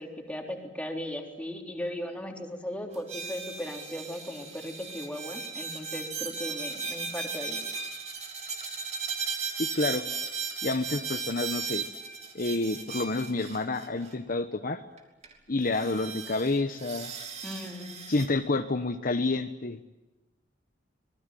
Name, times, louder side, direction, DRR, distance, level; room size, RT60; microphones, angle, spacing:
voice 1, 0.0-7.6 17.4-18.0, equal, 5° left, 2 dB, 3.7 m, -37 dB
sound 1, 2.9-14.1 15.0-15.1 15.2-15.3 15.7-18.3, right 5 dB, 40° right, 3.4 m, -36 dB
voice 2, 9.6-10.0 10.6-11.9 12.3-14.8 15.5-17.1 18.1-19.8, left 2 dB, 50° left, 8 dB, 1.1 m, -29 dB
25.5 x 21.0 x 9.2 m, 1.1 s
head